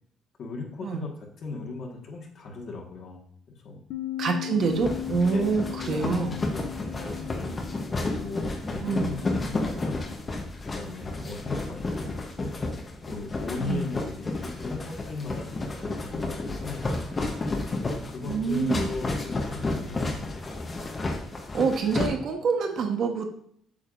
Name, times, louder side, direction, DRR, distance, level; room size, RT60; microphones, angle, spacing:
voice 1, 0.4-3.2 3.6-3.8 4.5-4.7 5.2-7.5 8.0-10.0 10.7-12.5 13.1-16.8 17.8-20.3, left 4 dB, 45° left, 1 dB, 1.5 m, -38 dB
Bass guitar, 3.9-10.2, left 12 dB, 70° left, 0.5 m, -38 dB
voice 2, 4.2-6.3 8.8-9.1 13.6-13.8 18.2-18.9 21.5-23.3, right 5 dB, 45° right, 4 dB, 1.1 m, -26 dB
sound 1, 4.6-22.1, left 2 dB, 20° left, 0.9 m, -32 dB
8.5 x 6.6 x 2.5 m, 0.64 s
cardioid pair, 165°, 0 cm